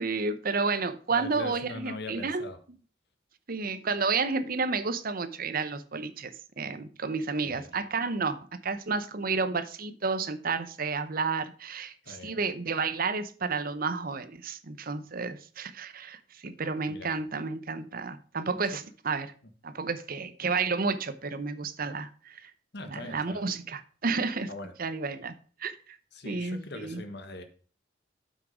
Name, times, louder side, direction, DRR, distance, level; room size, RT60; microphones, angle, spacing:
voice 1, 0.0-2.4 3.5-19.3 19.6-22.5 22.9-24.5 24.8-25.3 25.6-26.0 26.2-27.0, right 4 dB, 50° right, 0.9 m, -31 dB
voice 2, 1.1-2.6 7.4-7.7 12.0-12.4 16.9-17.1 18.7-18.8 22.7-23.4 24.5-24.7 26.1-27.4, left 2 dB, 65° left, 1.5 m, -41 dB
8.2 x 6.2 x 5.0 m
head